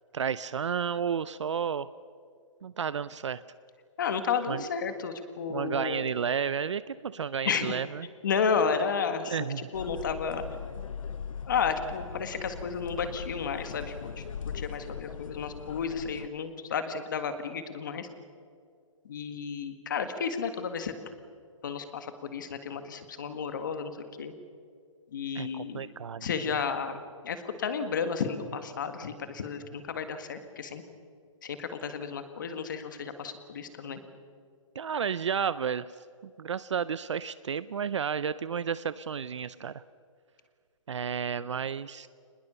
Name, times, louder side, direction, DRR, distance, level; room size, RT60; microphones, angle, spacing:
voice 1, 0.1-1.9 2.6-3.4 4.5-4.7 5.5-8.1 9.3-9.7 25.3-26.6 34.8-35.9 36.2-39.8 40.9-42.1, right 7 dB, 65° right, 16 dB, 0.6 m, -32 dB
voice 2, 4.0-6.1 7.4-7.8 8.2-9.4 9.7-10.4 11.5-14.1 14.5-18.1 19.1-20.9 21.6-23.9 24.2-24.3 25.1-25.9 26.2-30.8 31.4-34.0, left 6 dB, 35° left, 9 dB, 1.8 m, -32 dB
sound 1, 9.7-16.3, left 7 dB, 80° left, 0.9 m, -40 dB
24.5 x 20.5 x 6.9 m, 2.3 s
hypercardioid pair, 180°, 17 cm